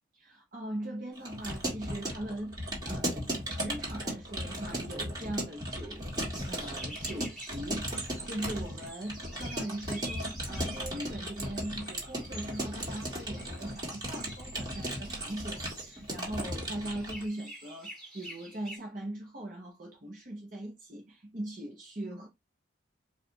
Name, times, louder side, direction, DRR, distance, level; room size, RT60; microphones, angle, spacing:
voice 1, 0.1-6.1 6.4-22.3, right 1 dB, 45° right, 0.9 m, -40 dB
Keyboard (musical) / Computer keyboard, 1.2-17.2, equal, 20° right, 1.7 m, -36 dB
sound 1, 6.2-18.8, right 1 dB, ahead, 1.9 m, -48 dB
4.8 x 2.4 x 3.9 m
head